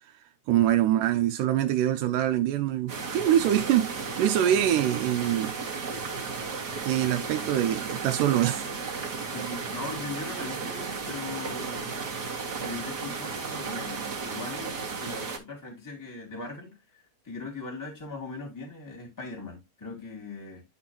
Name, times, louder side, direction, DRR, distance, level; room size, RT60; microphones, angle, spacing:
voice 1, 0.5-5.5 6.8-8.7, right 11 dB, 85° right, 2.2 m, -24 dB
sound 1, 2.9-15.4, right 5 dB, 35° right, 1.9 m, -34 dB
voice 2, 9.3-11.9 12.6-14.0 14.3-20.6, left 3 dB, 5° left, 2.4 m, -40 dB
12.0 x 4.3 x 2.8 m
omnidirectional pair, 3.7 m